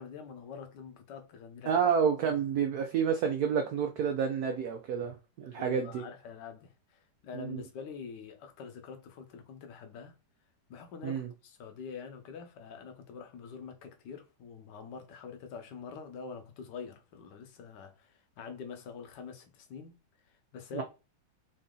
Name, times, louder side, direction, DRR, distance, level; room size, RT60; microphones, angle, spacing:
voice 1, 0.0-1.7 2.2-2.3 5.5-10.1 10.7-19.9 20.5-20.8, left 6 dB, 65° left, 1.4 m, -45 dB
voice 2, 1.7-6.0 7.3-7.6 11.0-11.3 20.7-20.8, right 7 dB, 80° right, 0.8 m, -29 dB
5.0 x 2.7 x 3.7 m
omnidirectional pair, 2.3 m